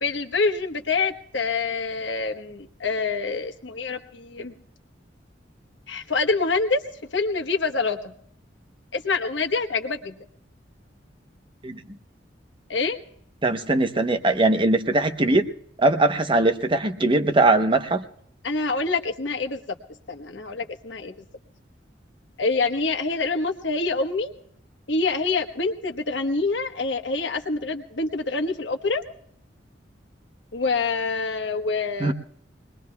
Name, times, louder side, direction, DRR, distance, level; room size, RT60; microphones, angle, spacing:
voice 1, 0.0-4.5 5.9-6.8 7.1-8.1 8.9-10.1 12.7-13.0 18.4-19.6 20.1-21.1 22.4-24.3 24.9-29.0 30.5-32.1, left 3 dB, 80° left, 6 dB, 1.2 m, -26 dB
voice 2, 13.4-15.5 15.8-18.0 32.0-32.1, right 2 dB, 30° right, 7 dB, 0.9 m, -20 dB
23.5 x 20.5 x 2.3 m, 0.67 s
head